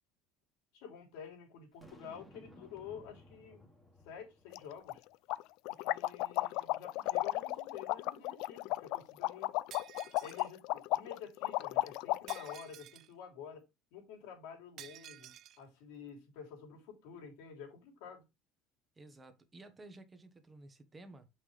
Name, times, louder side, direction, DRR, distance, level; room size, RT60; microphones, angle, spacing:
voice 1, 0.7-3.7 4.0-5.0 5.7-9.5 10.2-15.3 15.6-18.2, left 7 dB, 85° left, 3.4 m, -50 dB
Boom, 1.8-5.1, left 1 dB, 5° left, 1.5 m, -58 dB
sound 1, 4.5-4.6 4.9-5.0 5.3-12.6, left 18 dB, 60° left, 0.3 m, -34 dB
Shatter, 9.7-10.5 12.3-13.1 14.8-15.6, right 12 dB, 40° right, 0.4 m, -52 dB
voice 2, 19.0-21.3, right 2 dB, 15° right, 1.1 m, -54 dB
8.0 x 5.7 x 3.4 m
cardioid pair, 170°, 0 cm